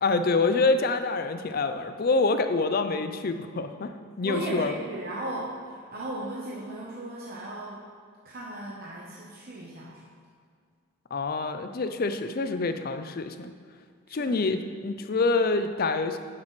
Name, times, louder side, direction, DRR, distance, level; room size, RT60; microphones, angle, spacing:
voice 1, 0.0-3.9 4.2-4.7 11.1-13.5 14.1-16.2, left 3 dB, 45° left, 9 dB, 0.4 m, -26 dB
voice 2, 4.2-7.8 8.2-10.0 14.1-14.4, right 1 dB, 45° right, -5 dB, 0.9 m, -36 dB
9.8 x 7.3 x 3.2 m, 2.1 s
head